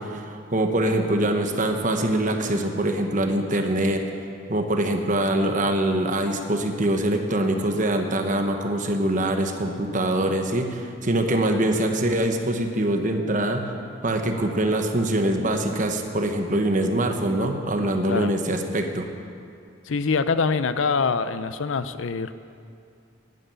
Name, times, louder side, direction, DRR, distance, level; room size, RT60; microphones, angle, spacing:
voice 1, 0.0-4.0 4.5-13.7 14.0-19.1, right 1 dB, 40° right, 5 dB, 1.2 m, -24 dB
voice 2, 19.9-22.3, left 4 dB, 75° left, 12 dB, 0.6 m, -24 dB
11.0 x 11.0 x 8.8 m, 2.4 s
head